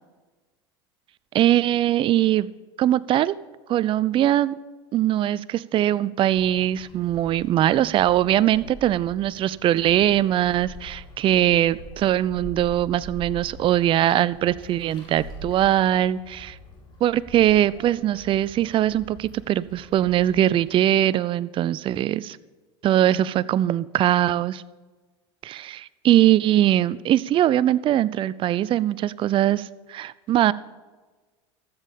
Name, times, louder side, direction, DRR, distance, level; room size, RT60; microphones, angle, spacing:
voice 1, 1.3-2.5 2.8-3.4 3.7-4.6 4.9-16.6 17.0-22.4 22.8-24.6 25.4-30.5, right 12 dB, 35° right, 20 dB, 0.4 m, -21 dB
sound 1, 6.3-20.7, equal, 30° left, 4.1 m, -44 dB
13.5 x 7.4 x 5.2 m, 1.3 s
hypercardioid pair, 100°, 14 cm